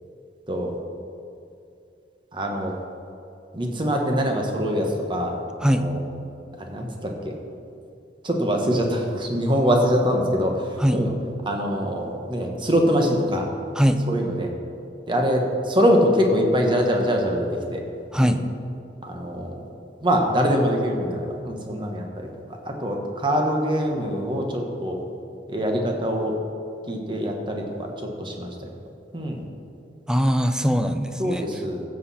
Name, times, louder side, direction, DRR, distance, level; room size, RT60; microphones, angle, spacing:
voice 1, 2.3-2.7 3.5-6.0 6.6-7.4 8.2-11.1 11.4-13.5 14.1-14.5 15.1-17.8 18.2-18.4 19.0-19.5 20.0-25.0 25.5-26.4 26.9-28.5 29.1-29.4 31.2-31.8, equal, 30° right, 2 dB, 1.3 m, -24 dB
voice 2, 18.1-18.4 30.1-31.5, equal, 5° right, 9 dB, 0.4 m, -21 dB
14.0 x 7.5 x 4.3 m, 2.6 s
head